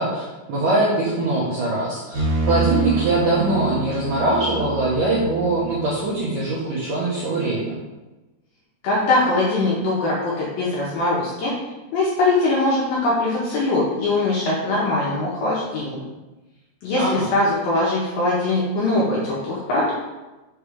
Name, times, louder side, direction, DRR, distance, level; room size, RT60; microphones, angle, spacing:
voice 1, 0.0-7.8 17.0-17.3, right 2 dB, 75° right, -8 dB, 1.9 m, -22 dB
sound 1, 2.1-5.9, right 4 dB, 55° right, 2.3 m, -26 dB
voice 2, 8.8-11.5 11.9-16.0 16.8-19.9, left 2 dB, 75° left, -6 dB, 2.2 m, -21 dB
6.5 x 3.3 x 4.9 m, 1.1 s
omnidirectional pair, 5.2 m